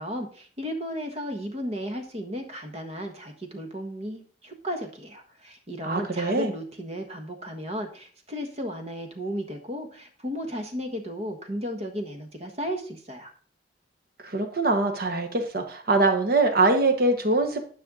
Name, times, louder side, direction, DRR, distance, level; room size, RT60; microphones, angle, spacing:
voice 1, 0.0-13.3, equal, 35° right, 4 dB, 1.4 m, -34 dB
voice 2, 5.8-6.5 14.2-17.6, right 2 dB, 55° right, 5 dB, 1.2 m, -23 dB
10.0 x 5.6 x 3.8 m, 0.44 s
head